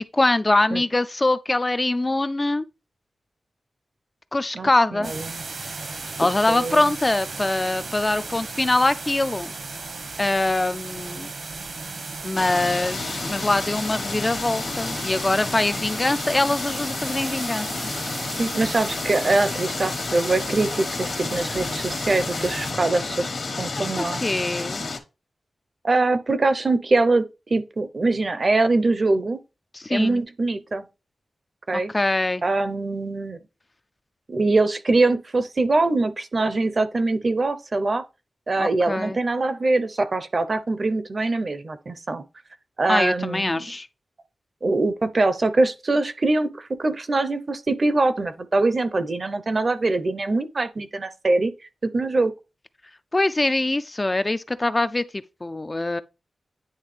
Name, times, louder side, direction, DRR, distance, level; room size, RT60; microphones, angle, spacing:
voice 1, 0.0-2.6 4.3-5.1 6.2-9.5 10.2-11.3 12.2-17.7 23.8-24.8 29.7-30.2 31.9-32.4 38.6-39.2 42.9-43.9 53.1-56.0, left 2 dB, 25° left, 0.3 m, -23 dB
voice 2, 4.5-5.4 6.5-6.9 18.4-23.3 23.6-24.2 25.8-27.2 27.5-29.4 29.9-30.9 31.7-31.9 32.4-33.4 34.3-38.0 38.5-42.2 42.8-43.7 44.6-51.5 51.8-52.3, right 2 dB, 40° right, 0.6 m, -23 dB
sound 1, 5.0-22.7, right 3 dB, 70° right, 1.2 m, -36 dB
sound 2, 12.3-25.0, left 3 dB, 65° left, 1.3 m, -31 dB
9.6 x 3.2 x 3.2 m
wide cardioid pair, 110°, 0 cm